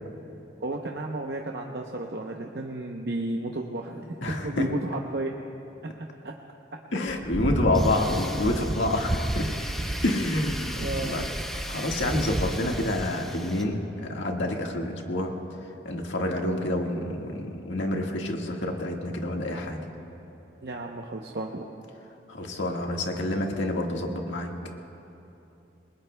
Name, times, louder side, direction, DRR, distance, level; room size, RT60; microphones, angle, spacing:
voice 1, 0.6-4.2 4.4-5.3 5.8-6.3 8.8-8.9 10.8-11.3 20.6-21.6, right 2 dB, 60° right, 1 dB, 0.8 m, -33 dB
voice 2, 4.2-4.6 6.9-9.5 10.0-11.2 11.7-15.3 15.8-19.8 22.3-24.5, left 1 dB, 80° left, 1 dB, 1.7 m, -28 dB
sound 1, 7.1-13.1, right 1 dB, 15° right, 0.4 m, -31 dB
Tools, 7.7-13.6, equal, ahead, 0.8 m, -38 dB
28.0 x 21.0 x 2.2 m, 2.9 s
head